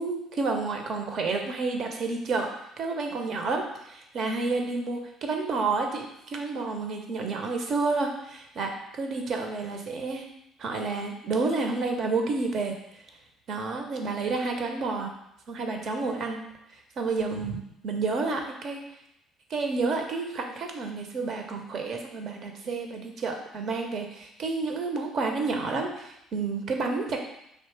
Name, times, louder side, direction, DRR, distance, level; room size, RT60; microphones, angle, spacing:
voice 1, 0.0-2.5 2.8-10.2 10.6-12.7 13.5-15.1 15.5-16.4 17.0-18.8 19.5-27.2, right 3 dB, 45° right, 3 dB, 0.7 m, -30 dB
3.5 x 3.1 x 4.4 m, 0.81 s
figure-of-eight pair, 50°, 0 cm